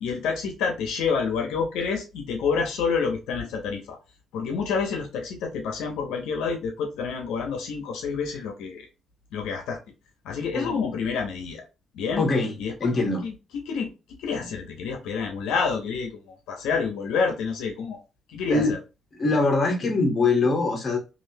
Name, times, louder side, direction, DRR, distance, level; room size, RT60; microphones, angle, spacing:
voice 1, 0.0-4.0 4.3-8.8 9.3-9.8 10.2-11.6 11.9-12.2 12.6-13.3 13.7-13.9 14.2-16.1 16.5-18.0 18.3-18.8, left 5 dB, 90° left, 3 dB, 0.7 m, -28 dB
voice 2, 10.5-10.9 12.2-12.5 12.8-13.2 14.3-14.5 18.5-18.7 19.1-21.0, left 3 dB, 40° left, 2 dB, 1.1 m, -23 dB
3.2 x 2.6 x 2.7 m, 0.29 s
cardioid pair, 90°, 0 cm